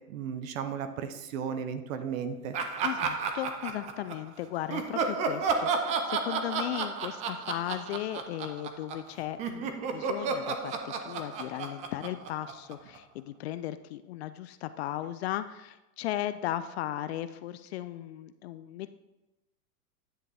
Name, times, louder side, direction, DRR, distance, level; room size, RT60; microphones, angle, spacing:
voice 1, 0.1-2.6, right 7 dB, 55° right, 9 dB, 1.1 m, -35 dB
Laughter, 2.5-4.3 4.7-9.1 9.4-13.0, right 5 dB, 15° right, 0.4 m, -32 dB
voice 2, 2.8-18.9, left 13 dB, 45° left, 12 dB, 0.4 m, -36 dB
10.0 x 6.6 x 3.4 m, 1.0 s
hypercardioid pair, 120°, 47 cm